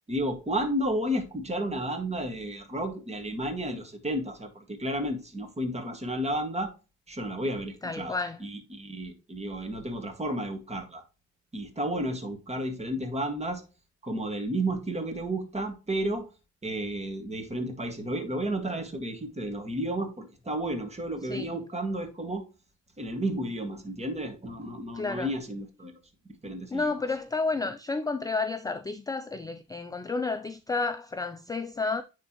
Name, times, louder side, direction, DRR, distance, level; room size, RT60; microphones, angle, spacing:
voice 1, 0.1-6.7 7.1-11.0 11.5-13.6 14.0-16.3 16.6-22.5 23.0-25.9 26.4-26.9, right 1 dB, 20° right, 1.8 m, -32 dB
voice 2, 7.8-8.4 21.3-21.5 24.9-25.3 26.7-32.0, left 3 dB, 10° left, 0.4 m, -31 dB
9.5 x 3.7 x 3.0 m
cardioid pair, 90°, 30 cm